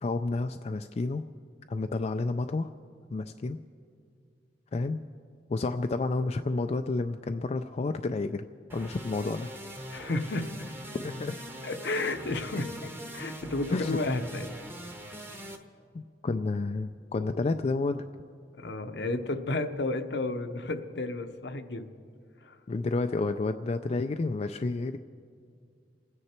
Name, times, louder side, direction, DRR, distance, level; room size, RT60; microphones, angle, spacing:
voice 1, 0.0-1.2 1.7-2.7 3.1-3.6 4.7-5.0 5.5-8.5 8.7-9.5 11.0-11.4 13.7-14.0 15.9-18.0 22.7-25.0, left 3 dB, 35° left, 7 dB, 0.3 m, -30 dB
sound 1, 8.7-15.6, equal, 10° right, 1.0 m, -42 dB
voice 2, 9.9-10.7 11.6-14.5 18.5-21.9 22.4-22.6, left 2 dB, 70° left, 8 dB, 0.8 m, -32 dB
28.0 x 9.7 x 4.4 m, 2.3 s
head